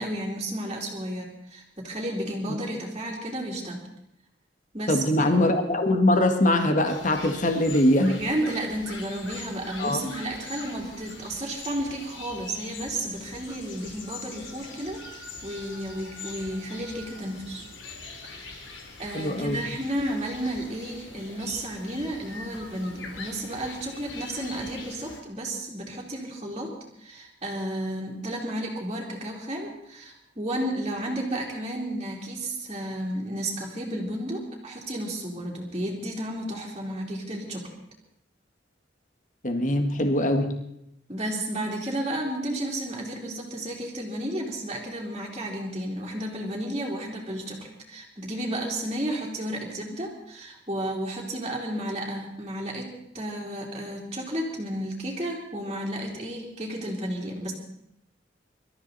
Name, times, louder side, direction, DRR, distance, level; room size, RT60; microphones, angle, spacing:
voice 1, 0.0-3.9 4.7-5.3 8.0-17.6 18.3-37.7 41.1-57.5, right 1 dB, 25° right, -7 dB, 3.1 m, -32 dB
voice 2, 4.9-8.1 9.8-10.0 19.1-19.6 39.4-40.5, left 1 dB, 45° left, 6 dB, 1.7 m, -22 dB
sound 1, 6.8-25.2, left 3 dB, 85° left, 3.1 m, -43 dB
25.5 x 13.5 x 4.2 m, 0.77 s
head